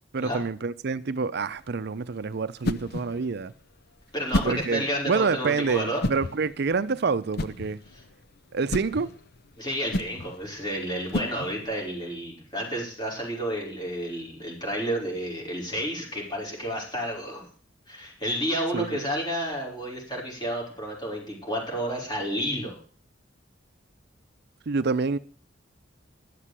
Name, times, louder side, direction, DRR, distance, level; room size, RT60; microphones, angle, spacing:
voice 1, 0.1-3.5 4.4-7.8 8.5-9.1 18.7-19.1 24.7-25.2, right 4 dB, 60° right, 0.5 m, -27 dB
sound 1, 1.3-11.9, left 1 dB, 55° left, 0.7 m, -34 dB
voice 2, 4.1-6.0 9.6-17.5 17.9-22.8, equal, 25° left, 5.4 m, -31 dB
12.0 x 7.5 x 8.2 m
head